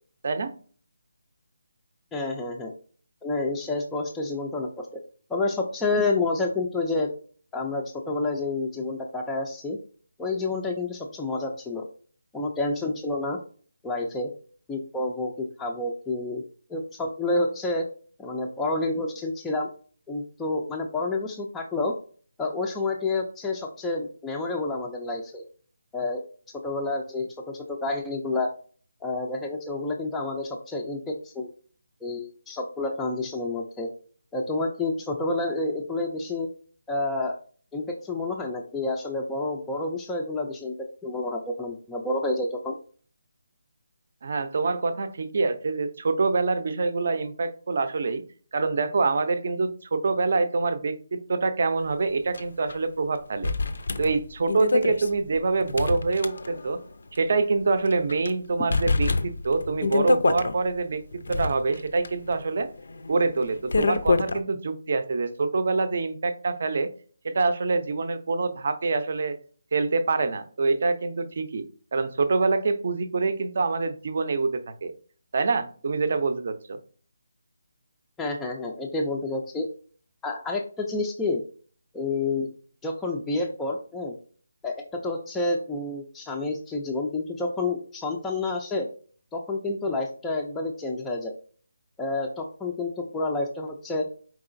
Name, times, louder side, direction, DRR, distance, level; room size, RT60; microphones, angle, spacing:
voice 1, 0.2-0.5 44.2-48.2 48.5-53.5 54.0-56.8 57.1-62.7 63.1-66.9 67.2-69.4 69.7-71.6 71.9-74.9 75.3-76.8, right 3 dB, 45° right, 10 dB, 0.5 m, -25 dB
voice 2, 2.1-2.7 3.2-4.9 5.3-7.1 7.5-9.8 10.2-11.8 12.3-13.4 13.8-14.3 14.7-16.4 16.7-17.8 18.2-19.7 20.1-21.9 22.4-25.4 25.9-26.2 26.6-28.5 29.0-31.5 32.0-33.9 34.3-36.5 36.9-37.4 37.7-40.7 41.0-42.8 78.2-79.7 80.2-81.4 81.9-82.5 82.8-84.1 84.6-88.9 89.3-91.3 92.0-94.0, left 2 dB, 5° left, 0 dB, 0.3 m, -29 dB
sound 1, 52.3-52.4 52.7-52.8 53.4-56.8 57.2-57.3 57.9-58.3 58.7-60.5 61.1-64.4, left 3 dB, 70° left, 0.5 m, -26 dB
4.7 x 3.7 x 2.5 m, 0.43 s
hypercardioid pair, 170°, 0 cm